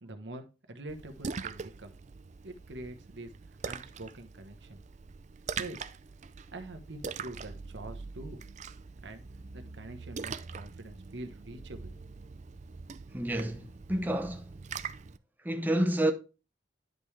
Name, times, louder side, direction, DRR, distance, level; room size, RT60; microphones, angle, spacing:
voice 1, 0.0-1.9 2.4-3.3 3.6-4.8 5.6-5.8 6.5-8.4 9.0-9.2 9.5-11.9, right 2 dB, 80° right, 1.2 m, -44 dB
Splash splatter, 0.9-15.2, right 5 dB, 40° right, 0.4 m, -43 dB
voice 2, 13.1-14.5 15.4-16.1, right 1 dB, 10° right, 0.7 m, -29 dB
10.5 x 5.3 x 3.3 m
head